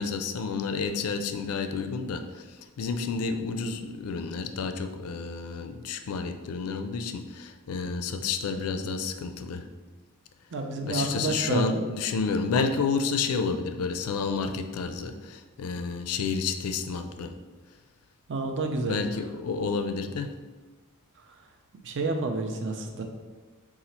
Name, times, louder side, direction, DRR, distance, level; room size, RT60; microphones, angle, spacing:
voice 1, 0.0-2.5 2.8-9.7 10.9-17.3 18.7-20.3, left 5 dB, 70° left, 7 dB, 0.4 m, -30 dB
voice 2, 10.5-11.8 18.3-19.0 21.8-23.0, right 2 dB, 55° right, 4 dB, 0.5 m, -29 dB
4.0 x 2.4 x 4.2 m, 1.3 s
head